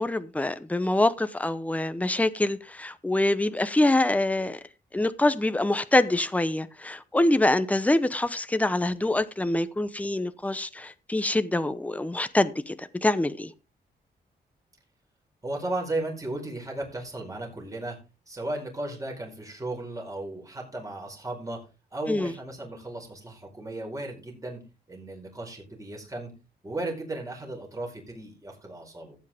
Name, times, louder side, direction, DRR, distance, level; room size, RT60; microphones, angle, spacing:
voice 1, 0.0-4.6 4.9-13.5 22.1-22.3, left 2 dB, 10° left, 0.8 m, -25 dB
voice 2, 15.4-18.0 18.3-21.6 21.9-24.6 24.9-26.3 26.6-29.1, right 2 dB, 20° right, 4.5 m, -35 dB
15.0 x 8.3 x 3.5 m
wide cardioid pair, 110°, 17 cm